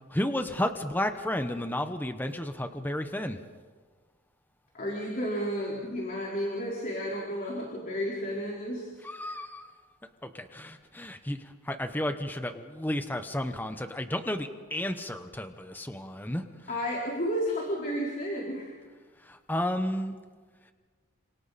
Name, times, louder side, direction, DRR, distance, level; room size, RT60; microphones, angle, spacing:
voice 1, 0.1-3.4 9.0-9.7 10.2-16.8 19.2-20.1, left 1 dB, 10° left, 8 dB, 1.0 m, -32 dB
voice 2, 4.7-8.9 16.7-18.7, equal, 40° left, -3 dB, 4.2 m, -32 dB
30.0 x 27.5 x 4.2 m, 1.5 s
head